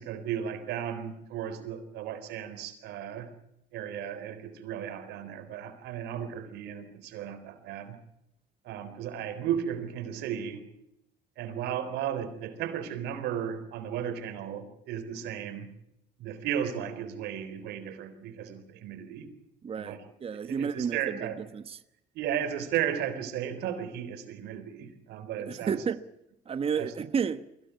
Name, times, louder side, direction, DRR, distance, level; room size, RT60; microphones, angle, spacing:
voice 1, 0.0-3.3 3.7-8.0 8.6-10.6 11.4-15.7 16.2-19.3 19.7-20.0 20.5-21.4 22.1-25.8 26.7-26.9, right 9 dB, 80° right, 4.0 m, -35 dB
voice 2, 19.6-21.8 25.4-26.0 26.5-27.4, right 6 dB, 35° right, 1.1 m, -31 dB
23.5 x 17.0 x 8.3 m
cardioid pair, 110°, 17 cm